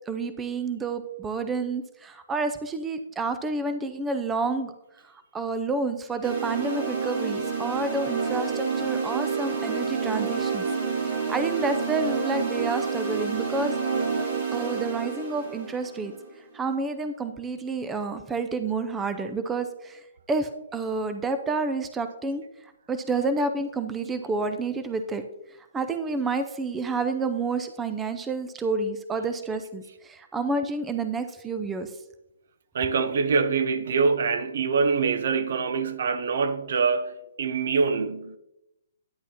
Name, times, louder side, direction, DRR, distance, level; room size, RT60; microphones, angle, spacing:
voice 1, 0.1-4.7 5.0-10.7 11.0-13.8 14.5-16.1 16.5-20.0 20.3-25.2 25.7-31.9, right 3 dB, 10° right, 0.5 m, -29 dB
sound 1, 6.2-16.3, right 5 dB, 45° right, 2.4 m, -29 dB
voice 2, 32.7-38.4, right 5 dB, 65° right, 0.7 m, -24 dB
10.0 x 8.2 x 2.9 m
hypercardioid pair, 140°, 0 cm